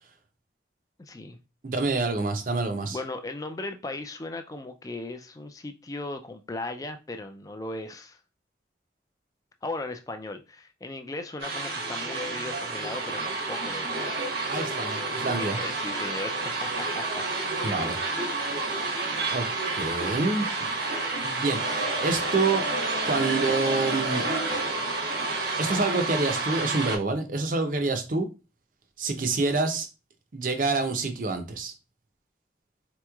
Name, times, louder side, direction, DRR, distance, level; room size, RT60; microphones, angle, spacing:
voice 1, 1.0-1.4 2.9-8.2 9.6-14.1 15.4-17.2, left 2 dB, 20° left, 0.3 m, -37 dB
voice 2, 1.6-3.0 14.5-15.6 17.6-18.0 19.3-19.5 19.8-20.7 21.2-22.6 23.0-24.2 25.6-28.3 29.0-29.9 30.3-31.7, right 3 dB, 45° right, 0.6 m, -27 dB
sewing and spraying medina marrakesh, 11.4-27.0, right 3 dB, 75° right, 1.0 m, -29 dB
4.2 x 3.0 x 2.3 m
head